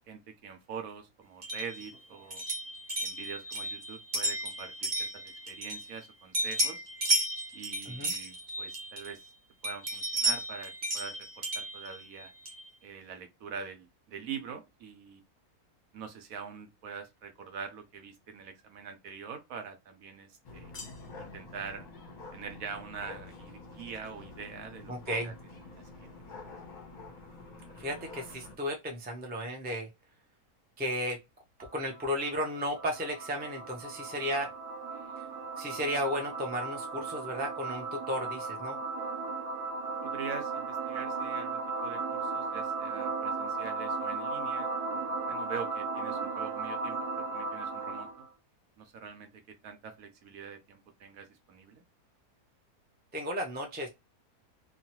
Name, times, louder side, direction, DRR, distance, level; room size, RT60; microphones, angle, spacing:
voice 1, 0.1-2.4 3.0-6.8 7.5-9.3 9.6-12.3 12.8-15.2 15.9-20.7 21.2-21.9 22.3-24.9 25.2-26.1 40.0-48.3 48.8-51.8, right 6 dB, 70° right, 1.1 m, -44 dB
sound 1, 1.4-6.1 6.3-9.3 9.6-12.7, right 1 dB, 45° right, 0.9 m, -34 dB
sound 2, 20.4-28.6, left 3 dB, 40° left, 0.8 m, -47 dB
voice 2, 24.9-25.3 27.8-29.9 30.8-31.2 31.7-34.5 35.6-38.8 53.1-53.9, equal, 15° right, 0.3 m, -34 dB
sound 3, 31.6-48.3, right 4 dB, 85° right, 1.2 m, -36 dB
3.0 x 2.3 x 2.8 m
omnidirectional pair, 1.6 m